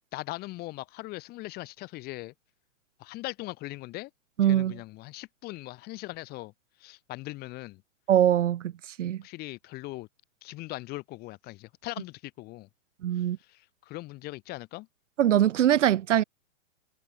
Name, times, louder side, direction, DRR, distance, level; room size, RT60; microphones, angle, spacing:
voice 1, 0.1-2.3 3.0-4.1 4.4-6.5 6.8-7.8 9.2-10.1 10.4-12.7 13.2-13.3 13.5-14.9, left 19 dB, 25° left, 2.6 m, -40 dB
voice 2, 4.4-4.8 8.1-8.7 9.0-9.2 13.0-13.4 15.2-16.2, right 11 dB, 65° right, 1.6 m, -22 dB
hypercardioid pair, 155°, 39 cm